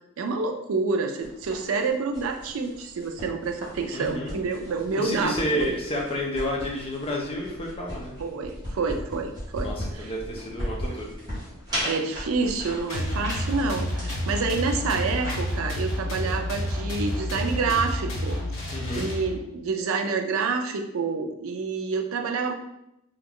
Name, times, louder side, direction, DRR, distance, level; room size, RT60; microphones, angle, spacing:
voice 1, 0.2-5.8 8.2-10.1 11.9-18.4 18.9-22.5, right 4 dB, 80° right, 5 dB, 0.4 m, -28 dB
sound 1, 1.2-15.3, equal, 20° right, 1.1 m, -37 dB
voice 2, 3.9-4.4 5.0-8.2 9.6-11.1 17.7-17.8 18.7-19.1, left 1 dB, 25° left, -2 dB, 0.6 m, -30 dB
sound 2, 12.9-19.6, left 1 dB, 65° left, 0.9 m, -30 dB
3.0 x 2.3 x 3.6 m, 0.83 s
head